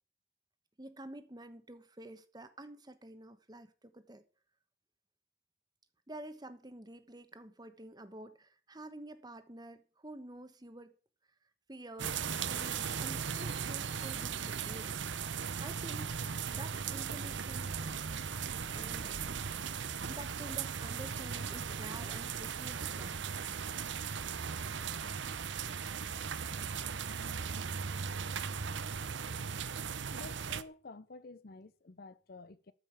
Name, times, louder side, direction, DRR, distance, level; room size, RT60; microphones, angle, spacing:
voice 1, 0.8-4.2 6.1-10.9 11.7-14.9 15.6-16.1 16.5-17.8 18.7-19.4 20.1-23.2, right 1 dB, 20° right, 1.1 m, -49 dB
sound 1, 12.0-30.6, right 6 dB, 65° right, 0.7 m, -38 dB
voice 2, 30.1-32.7, left 3 dB, 50° left, 0.6 m, -51 dB
13.5 x 5.6 x 8.2 m
head